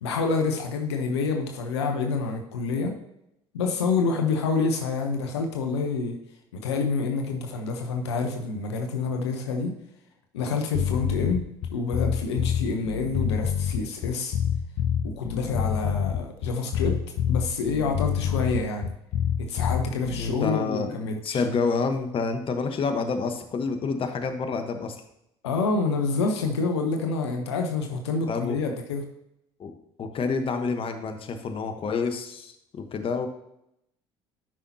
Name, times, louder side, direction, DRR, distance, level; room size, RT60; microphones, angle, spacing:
voice 1, 0.0-2.9 3.5-6.2 6.5-9.7 10.3-11.4 11.7-14.4 15.0-17.0 17.3-18.9 19.4-21.4 25.4-29.0, left 4 dB, 85° left, 4 dB, 0.9 m, -27 dB
sound 1, 10.7-20.4, left 8 dB, 60° left, 0.7 m, -27 dB
voice 2, 20.2-25.0 28.3-28.5 29.6-33.3, left 4 dB, 40° left, 6 dB, 1.1 m, -28 dB
12.0 x 5.6 x 2.8 m, 0.81 s
hypercardioid pair, 65°, 14 cm